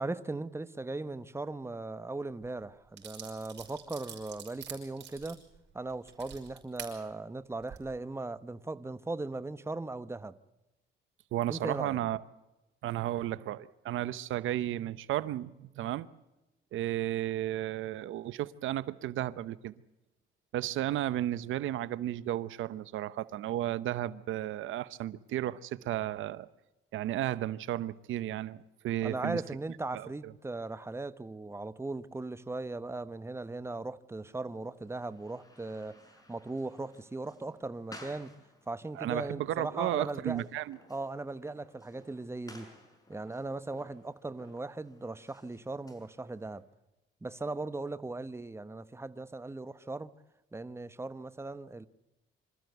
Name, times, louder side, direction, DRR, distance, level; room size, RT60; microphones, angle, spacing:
voice 1, 0.0-5.4 5.7-10.4 11.5-12.0 29.0-36.0 36.3-38.3 38.7-40.5 40.9-42.7 43.1-46.6 47.2-50.1 50.5-51.9, right 2 dB, 15° right, 1.0 m, -38 dB
sound 1, 2.4-2.5 3.0-6.9 7.5-7.8, right 8 dB, 60° right, 5.8 m, -46 dB
voice 2, 11.3-12.2 12.8-16.1 16.7-19.7 20.5-26.5 26.9-29.4 29.9-30.3 38.9-40.8, right 13 dB, 80° right, 0.8 m, -33 dB
sound 2, 34.2-46.6, left 1 dB, 20° left, 6.0 m, -57 dB
26.0 x 14.0 x 8.0 m
cardioid pair, 90°, 20 cm